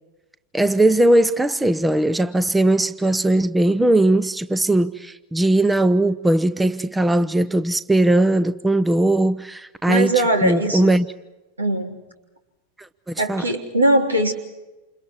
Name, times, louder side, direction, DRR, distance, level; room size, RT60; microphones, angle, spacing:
voice 1, 0.5-11.1 13.1-13.4, right 1 dB, 5° right, 0.8 m, -19 dB
voice 2, 9.9-10.9 11.6-12.0 13.2-14.3, right 1 dB, 80° right, 3.4 m, -20 dB
29.0 x 28.5 x 4.7 m
figure-of-eight pair, 90°, 0 cm